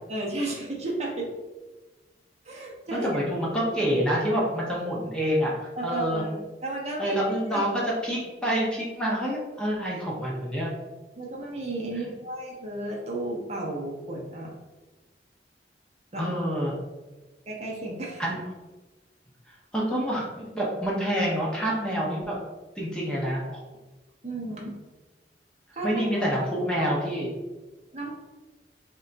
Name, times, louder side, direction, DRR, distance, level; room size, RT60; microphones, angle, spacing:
voice 1, 0.1-1.3 2.4-3.1 5.8-7.1 7.5-7.8 11.2-14.5 16.1-16.3 17.5-18.2 24.2-24.8 25.7-26.2 27.9-28.1, right 2 dB, 40° right, -2 dB, 0.6 m, -33 dB
voice 2, 3.0-6.2 7.0-10.7 11.9-12.1 16.2-16.7 18.2-18.4 19.7-22.4 22.8-23.4 25.8-27.3, equal, 5° left, -5 dB, 0.7 m, -27 dB
3.6 x 2.2 x 3.8 m, 1.2 s
head